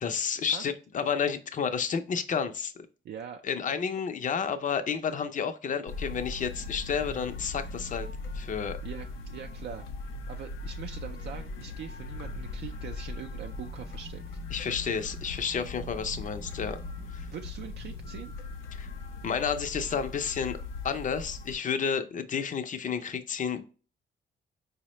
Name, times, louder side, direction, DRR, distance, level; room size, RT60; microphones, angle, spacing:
voice 1, 0.0-2.9 3.4-8.1 8.3-8.8 14.5-16.8 17.1-17.3 18.7-18.9 19.2-20.6 20.8-23.6, left 6 dB, 40° left, 9 dB, 0.5 m, -31 dB
voice 2, 3.0-3.7 8.8-9.9 10.3-14.2 17.3-18.3, right 8 dB, 60° right, 4 dB, 0.4 m, -42 dB
sound 1, 5.9-21.5, left 3 dB, 85° left, 0.6 m, -39 dB
sound 2, 12.6-18.3, right 1 dB, 15° right, 0.6 m, -51 dB
4.7 x 2.1 x 2.9 m, 0.37 s
cardioid pair, 90°, 20 cm